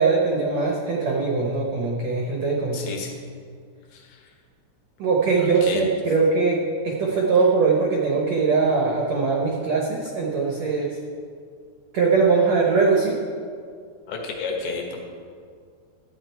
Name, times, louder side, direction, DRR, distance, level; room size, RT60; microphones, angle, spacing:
voice 1, 0.0-3.0 5.0-11.0 11.9-13.2, right 4 dB, 85° right, -1 dB, 1.5 m, -21 dB
voice 2, 2.7-3.1 3.9-4.0 5.4-5.9 14.1-15.0, left 5 dB, 75° left, 1 dB, 3.1 m, -31 dB
12.0 x 8.4 x 4.5 m, 2.2 s
omnidirectional pair, 4.6 m